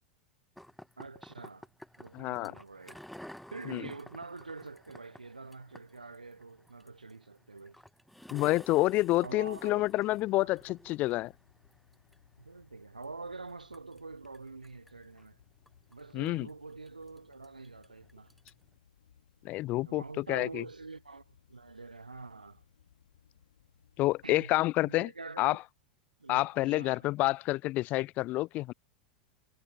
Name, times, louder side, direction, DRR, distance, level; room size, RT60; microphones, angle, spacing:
sound 1, 0.6-18.8, equal, ahead, 0.9 m, -54 dB
voice 1, 1.0-1.7 2.0-3.0 3.5-7.8 9.2-9.8 10.3-10.6 12.4-15.4 15.9-18.3 19.8-22.6 24.2-24.5 24.8-25.6 26.2-27.3, right 3 dB, 85° right, 0.8 m, -46 dB
voice 2, 2.1-2.5 3.7-3.9 8.3-11.3 16.1-16.5 19.4-20.6 24.0-25.1 25.4-25.6 26.3-28.7, left 18 dB, 40° left, 0.3 m, -28 dB
sound 2, 8.8-24.6, left 9 dB, 70° left, 2.7 m, -65 dB
figure-of-eight pair, 90°, 4 cm